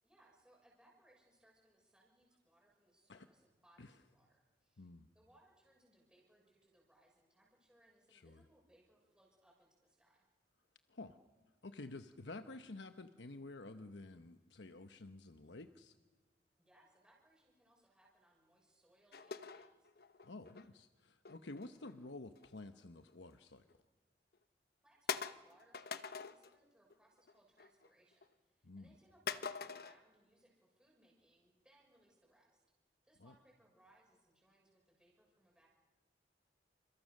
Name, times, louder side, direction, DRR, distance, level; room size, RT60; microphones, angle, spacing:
voice 1, 0.0-4.9 5.1-10.2 16.6-19.9 24.8-32.6 33.0-35.7, right 1 dB, 5° right, -3 dB, 6.7 m, -70 dB
voice 2, 4.8-5.1 8.1-8.4 10.9-11.2 11.6-15.9 20.2-23.6 28.6-28.9 33.2-33.3, left 2 dB, 85° left, 8 dB, 1.0 m, -51 dB
sound 1, 19.1-20.7 21.2-22.5 22.9-23.2 23.7-23.8 24.3-24.4 25.1-26.6 26.9-27.3 27.6-28.2 29.3-30.0, left 6 dB, 55° left, 1.0 m, -44 dB
30.0 x 27.5 x 6.6 m, 1.3 s
head